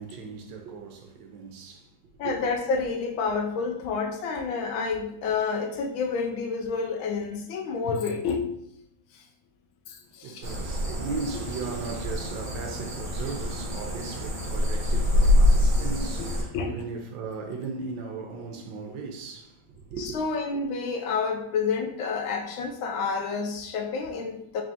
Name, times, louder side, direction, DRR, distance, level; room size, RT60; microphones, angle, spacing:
voice 1, 0.0-1.9 2.2-2.3 10.2-20.2, right 4 dB, 75° right, 1.2 m, -37 dB
voice 2, 2.2-8.5 9.1-9.2 9.9-10.5 16.2-16.8 20.0-24.6, left 5 dB, 80° left, 1.3 m, -29 dB
sound 1, 10.4-16.4, left 1 dB, 50° right, 1.1 m, -25 dB
4.1 x 3.6 x 2.6 m
omnidirectional pair, 2.2 m